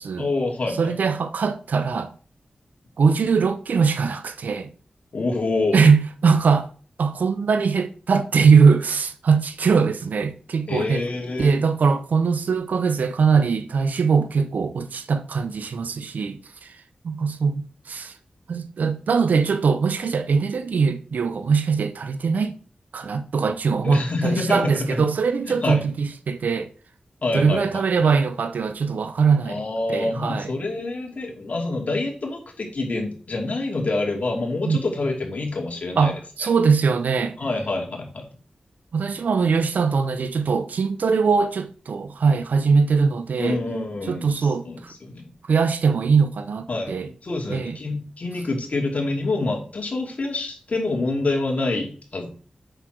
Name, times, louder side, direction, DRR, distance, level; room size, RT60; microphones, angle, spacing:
voice 1, 0.2-0.9 5.1-5.8 10.7-11.6 23.8-25.0 25.5-25.8 27.2-28.1 29.5-36.1 36.4-36.5 37.4-38.2 43.4-45.3 46.7-52.3, left 2 dB, 60° left, 2.9 m, -27 dB
voice 2, 0.8-2.1 3.0-4.7 5.7-6.7 7.0-11.0 11.4-16.7 17.0-18.1 18.5-22.6 22.9-26.7 27.3-29.6 29.9-30.5 34.6-34.8 36.0-37.4 38.9-43.6 44.1-44.9 45.5-47.1 47.5-47.8, right 5 dB, 85° right, 0.7 m, -21 dB
7.8 x 6.8 x 4.6 m
cardioid pair, 45°, 3 cm